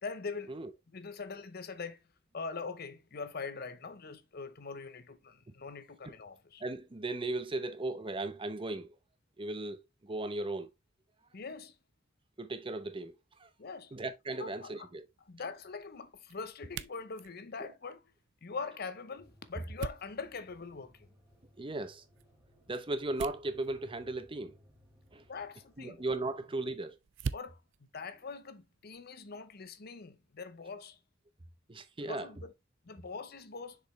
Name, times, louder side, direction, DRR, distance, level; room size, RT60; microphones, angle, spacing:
voice 1, 0.0-0.6 0.9-2.0 2.3-6.6 11.3-11.8 13.6-13.9 14.4-14.9 15.3-18.1 18.4-21.1 25.3-26.0 27.3-31.0 32.0-32.5 32.8-33.8, left 4 dB, 50° left, 0.7 m, -43 dB
voice 2, 6.6-9.0 9.4-10.7 12.4-13.1 13.4-13.5 13.9-15.1 21.6-22.0 22.7-24.6 25.1-25.2 25.8-27.0 31.7-32.3, right 2 dB, 25° right, 0.7 m, -36 dB
sound 1, 14.2-29.1, right 5 dB, 65° right, 0.5 m, -48 dB
sound 2, 19.2-26.5, equal, 10° right, 2.1 m, -63 dB
6.7 x 5.0 x 3.1 m
head